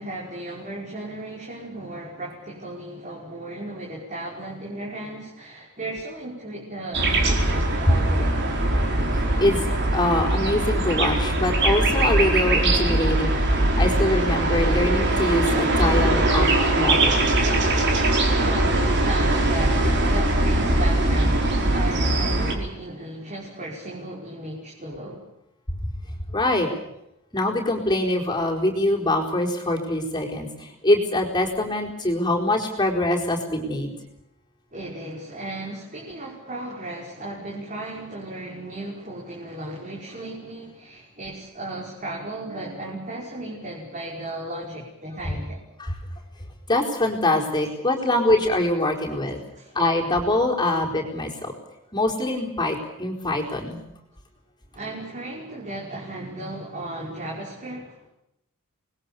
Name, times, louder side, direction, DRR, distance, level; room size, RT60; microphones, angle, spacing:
voice 1, 0.0-8.4 18.3-25.3 34.7-45.6 49.5-49.8 54.7-58.1, right 1 dB, 35° right, -3 dB, 5.3 m, -35 dB
sound 1, 6.9-22.6, right 1 dB, 55° right, 4.8 m, -21 dB
voice 2, 9.1-16.5 16.7-17.2 26.3-26.7 27.3-33.9 45.8-46.0 46.7-49.4 49.7-51.5 51.9-53.8, left 1 dB, 20° left, -1 dB, 4.4 m, -24 dB
28.0 x 21.0 x 7.1 m, 0.84 s
head